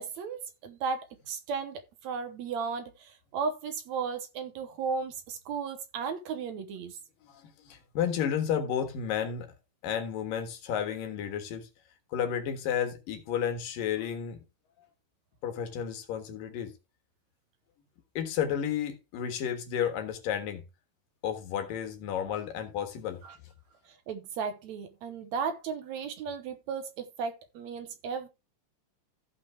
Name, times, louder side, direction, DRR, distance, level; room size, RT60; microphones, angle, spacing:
voice 1, 0.0-7.0 23.2-23.4 23.9-28.3, right 5 dB, 65° right, 2.1 m, -35 dB
voice 2, 7.2-9.6 9.8-11.7 12.1-14.4 15.4-16.7 18.2-20.6 21.2-23.2, left 8 dB, 85° left, 3.3 m, -32 dB
15.0 x 5.6 x 3.5 m
omnidirectional pair, 3.8 m